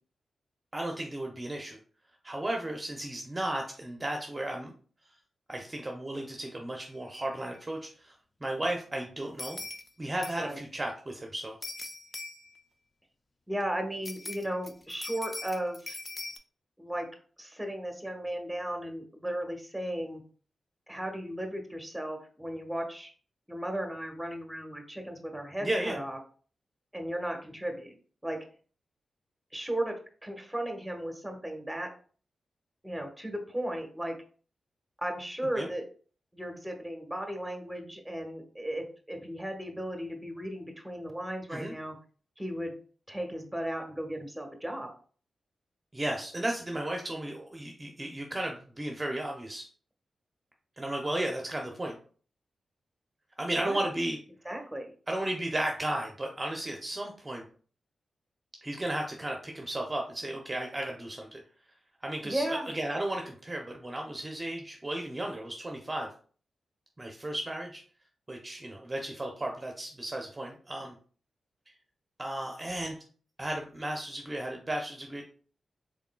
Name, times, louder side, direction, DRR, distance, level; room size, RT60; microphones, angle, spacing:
voice 1, 0.7-1.8 2.2-4.7 5.5-8.1 8.4-9.6 10.0-11.5 25.6-26.0 35.6-35.7 41.5-41.7 45.9-49.7 50.8-52.0 53.4-54.2 55.1-57.4 58.6-61.4 62.0-62.4 62.7-66.1 67.0-67.8 68.3-70.9 72.2-73.0 73.4-75.2, right 1 dB, 30° right, 1 dB, 0.7 m, -34 dB
sound 1, 7.1-7.2 7.5-7.6 9.4-9.9 10.2-10.6 11.6-12.6 14.0-16.4, left 2 dB, 35° left, 0.5 m, -41 dB
voice 2, 13.5-16.0 16.8-17.1 17.4-20.2 20.9-23.1 23.5-26.2 26.9-27.9 28.2-28.4 29.5-31.9 32.8-34.2 35.0-35.8 36.3-42.0 42.4-42.7 43.1-44.9 53.5-53.9 54.4-54.9 62.2-62.7, right 1 dB, 5° right, 3 dB, 1.2 m, -35 dB
3.7 x 3.6 x 2.3 m, 0.42 s
supercardioid pair, 40°, 0 cm